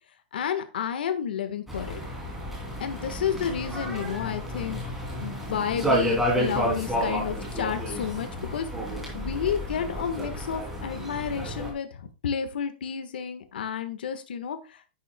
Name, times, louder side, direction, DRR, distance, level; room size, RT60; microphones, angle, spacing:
voice 1, 0.3-2.0 2.8-4.8 5.1-14.9, left 8 dB, 90° left, 9 dB, 1.4 m, -31 dB
sound 1, 1.7-11.7, equal, 5° right, 2.7 m, -30 dB
10.0 x 9.6 x 2.2 m, 0.31 s
supercardioid pair, 180°, 5 cm